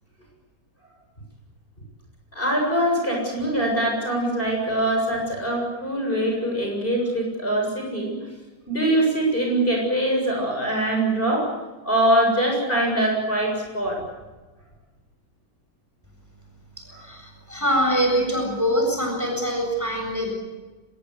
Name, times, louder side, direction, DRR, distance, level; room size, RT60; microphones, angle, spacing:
voice 1, 2.3-8.1 8.7-11.5 11.8-14.0 16.9-17.0, right 1 dB, 30° left, 0 dB, 7.7 m, -23 dB
voice 2, 17.0-20.3, equal, 10° right, 1 dB, 7.5 m, -24 dB
25.5 x 21.5 x 8.3 m, 1.2 s
omnidirectional pair, 2.0 m